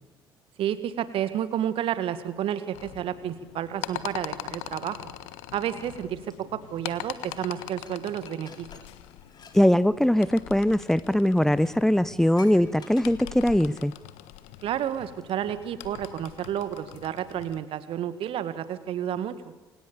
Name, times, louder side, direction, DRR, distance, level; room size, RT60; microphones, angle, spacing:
voice 1, 0.6-5.0 5.5-6.2 6.7-8.7 14.6-19.3, right 10 dB, 55° right, 12 dB, 2.0 m, -30 dB
sound 1, 2.7-17.6, left 14 dB, 65° left, 1.3 m, -42 dB
Dishes pots and pans, 7.1-9.6 9.9-10.1 10.9-11.0 11.4-11.5 11.7-13.9 14.3-14.4, left 5 dB, 40° left, 4.4 m, -51 dB
voice 2, 9.5-13.9, left 1 dB, 5° left, 17 dB, 0.8 m, -21 dB
28.0 x 26.0 x 7.0 m, 1.1 s
figure-of-eight pair, 50°, 11 cm